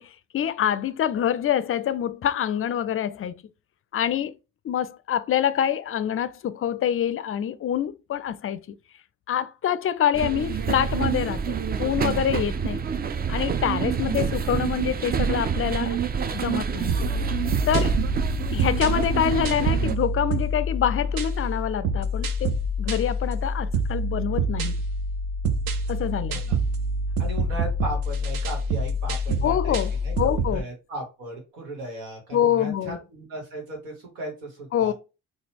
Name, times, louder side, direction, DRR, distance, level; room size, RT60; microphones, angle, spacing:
voice 1, 0.0-3.3 3.9-4.3 4.6-8.6 9.3-12.8 13.3-16.0 16.3-17.0 17.7-18.0 18.5-24.8 25.9-26.4 29.4-30.6 32.3-33.0 34.7-34.9, left 9 dB, 40° left, 0.4 m, -26 dB
sound 1, 10.1-19.9, right 7 dB, 30° right, 0.4 m, -27 dB
sound 2, 16.9-30.6, right 1 dB, 65° right, 0.6 m, -26 dB
voice 2, 27.2-29.8 30.0-34.9, right 1 dB, 90° right, 1.3 m, -36 dB
4.1 x 2.4 x 2.8 m
supercardioid pair, 55°, 35 cm